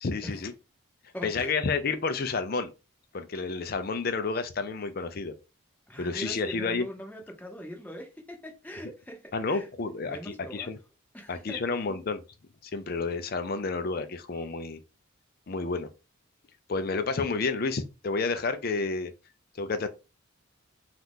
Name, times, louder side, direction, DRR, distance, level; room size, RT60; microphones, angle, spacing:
voice 1, 0.0-0.5 1.2-2.7 3.1-5.3 6.0-6.8 9.3-10.8 11.3-12.2 12.6-14.8 15.5-15.9 16.7-19.1 19.5-19.9, left 4 dB, 45° left, 0.4 m, -30 dB
voice 2, 1.1-1.5 5.9-9.7 10.0-10.8 11.1-11.6, equal, 10° left, 0.8 m, -42 dB
2.8 x 2.5 x 3.5 m
head